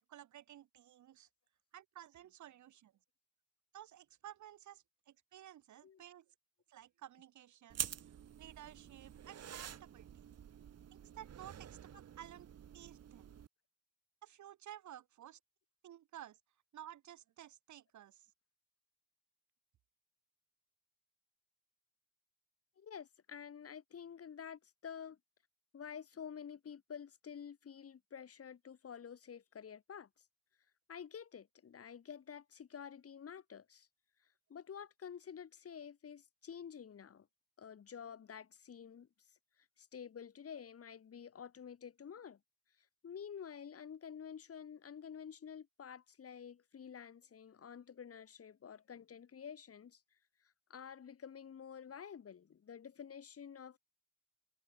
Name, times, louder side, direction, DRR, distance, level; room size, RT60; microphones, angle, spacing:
voice 1, 0.1-1.3 1.7-2.9 3.7-6.3 6.7-10.3 10.9-12.5 12.7-13.2 14.2-15.4 15.8-16.4 16.7-18.3, right 11 dB, 70° right, 4.4 m, -54 dB
sound 1, 7.7-13.5, right 9 dB, 55° right, 2.3 m, -47 dB
voice 2, 22.8-25.2 25.7-30.1 30.9-33.9 34.5-37.3 37.6-39.1 39.8-42.4 43.0-50.0 50.7-53.8, left 7 dB, 50° left, 5.5 m, -50 dB
cardioid pair, 90°, 30 cm